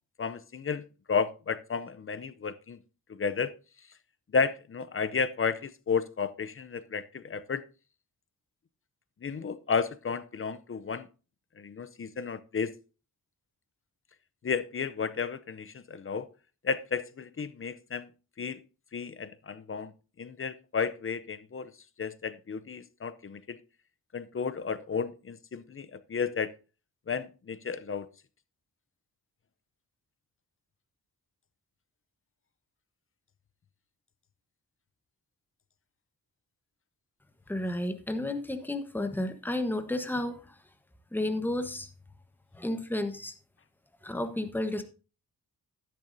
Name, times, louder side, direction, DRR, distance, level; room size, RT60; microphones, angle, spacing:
voice 1, 0.2-2.8 3.1-3.5 4.3-7.6 9.2-11.1 11.6-12.7 14.4-16.3 16.6-18.1 18.4-18.6 18.9-19.9 20.2-21.7 22.0-23.6 24.1-26.5 27.1-28.1, left 5 dB, 35° left, 0.6 m, -32 dB
voice 2, 37.5-40.5 41.1-41.9 42.5-43.3 44.0-44.8, left 1 dB, 5° left, 1.1 m, -32 dB
12.0 x 10.5 x 2.7 m
wide cardioid pair, 105°, 36 cm